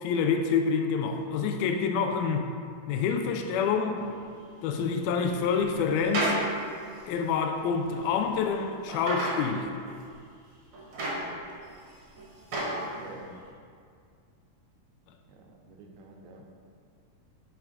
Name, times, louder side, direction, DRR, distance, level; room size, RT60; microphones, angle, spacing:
voice 1, 0.0-2.5 2.9-4.0 4.6-6.4 7.1-9.7, left 6 dB, 85° left, 5 dB, 2.4 m, -27 dB
sound 1, 4.0-4.1 5.2-6.4 7.0-7.1 8.0-8.4 8.9-9.4 10.0-10.1 10.7-11.7 12.0-12.8 13.3-13.4, right 1 dB, 50° right, 1.8 m, -31 dB
voice 2, 12.8-13.3 15.3-16.4, right 3 dB, 85° right, 1 dB, 2.7 m, -48 dB
7.5 x 4.7 x 4.7 m, 2.2 s
omnidirectional pair, 4.3 m